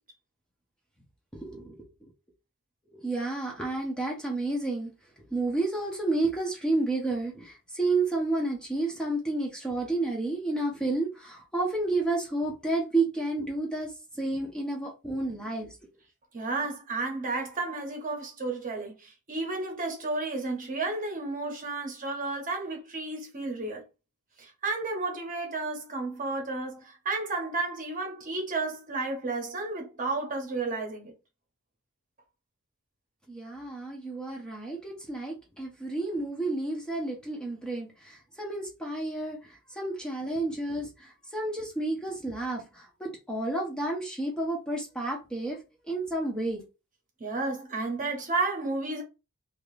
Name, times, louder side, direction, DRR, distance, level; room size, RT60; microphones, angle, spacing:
voice 1, 1.3-1.8 2.9-4.9 5.3-15.7 33.3-45.6 45.9-46.6, right 2 dB, 5° left, 0.7 m, -31 dB
voice 2, 16.3-23.8 24.4-31.1 47.2-49.0, right 3 dB, 40° right, 1.0 m, -32 dB
2.9 x 2.5 x 3.1 m
head